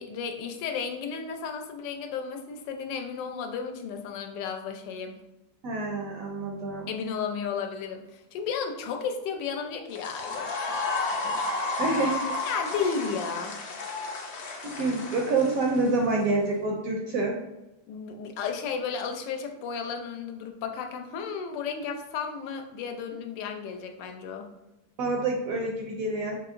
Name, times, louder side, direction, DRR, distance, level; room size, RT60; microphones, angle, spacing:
voice 1, 0.0-5.2 6.9-11.5 12.4-13.6 17.9-24.5, left 6 dB, 85° left, 5 dB, 1.2 m, -34 dB
voice 2, 5.6-6.9 11.8-12.2 12.8-12.9 14.6-17.3 25.0-26.4, right 3 dB, 75° right, 0 dB, 0.8 m, -27 dB
sound 1, 9.9-16.2, left 3 dB, 60° left, 0.6 m, -32 dB
5.0 x 2.8 x 2.5 m, 1.0 s
omnidirectional pair, 1.9 m